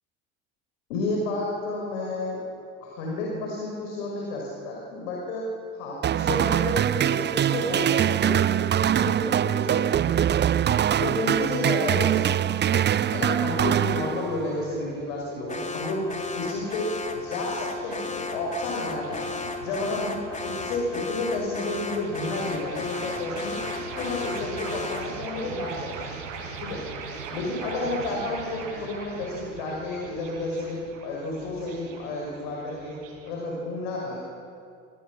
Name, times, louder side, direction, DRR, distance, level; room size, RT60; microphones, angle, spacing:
voice 1, 0.9-2.4 2.8-5.4 5.7-8.4 8.9-10.2 11.0-16.0 16.3-19.3 19.6-23.6 23.9-26.0 26.6-26.8 27.3-33.0 33.3-34.2, left 2 dB, 65° left, -1 dB, 5.6 m, -31 dB
sound 1, 6.0-14.6, right 10 dB, 25° right, 0.7 m, -23 dB
sound 2, 14.6-33.3, right 5 dB, 70° right, 5.5 m, -41 dB
Alarm, 15.5-25.2, left 4 dB, 20° left, 3.1 m, -34 dB
28.5 x 25.5 x 6.2 m, 2.5 s
figure-of-eight pair, 60°, 40 cm